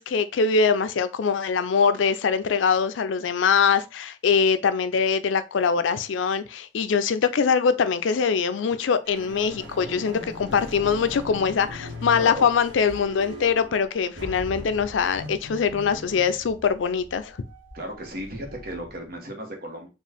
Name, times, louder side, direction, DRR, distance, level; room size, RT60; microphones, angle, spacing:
voice 1, 0.0-17.4, left 6 dB, 85° left, 0.4 m, -23 dB
sound 1, 9.0-19.1, left 1 dB, 75° right, 1.3 m, -40 dB
voice 2, 12.1-12.5 17.7-19.9, equal, 50° right, 1.1 m, -35 dB
4.5 x 2.4 x 3.4 m
head